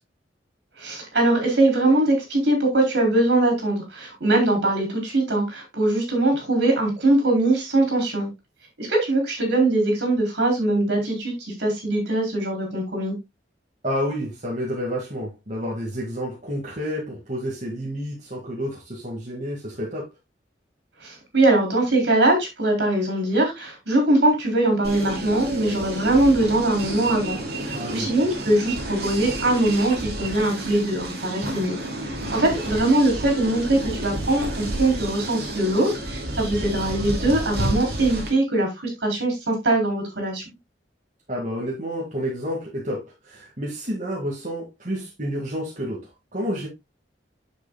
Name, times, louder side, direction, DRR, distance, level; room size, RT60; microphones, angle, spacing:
voice 1, 0.8-8.3 8.8-13.2 21.0-27.4 27.6-31.8 32.3-38.7 39.0-40.4, right 2 dB, 75° right, 4.1 m, -21 dB
voice 2, 13.8-20.1 27.7-28.1 41.3-46.7, equal, 45° right, 2.2 m, -30 dB
sound 1, 24.8-38.3, right 1 dB, 60° right, 2.4 m, -31 dB
9.5 x 7.0 x 2.3 m
head